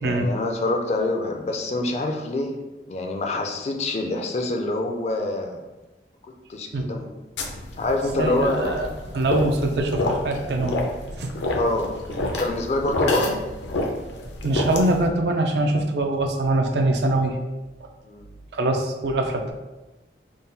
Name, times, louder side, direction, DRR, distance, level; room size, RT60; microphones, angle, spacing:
voice 1, 0.0-5.6 6.5-7.1 7.8-8.7 11.5-11.9 12.4-13.4 18.1-18.3, left 2 dB, 35° left, 3 dB, 0.4 m, -26 dB
sound 1, 7.4-15.1, left 1 dB, 80° left, 0.6 m, -28 dB
voice 2, 8.2-8.9 9.1-10.8 11.2-11.3 14.4-17.4 18.5-19.5, right 2 dB, 65° right, 4 dB, 0.5 m, -23 dB
3.7 x 2.2 x 3.9 m, 1.1 s
head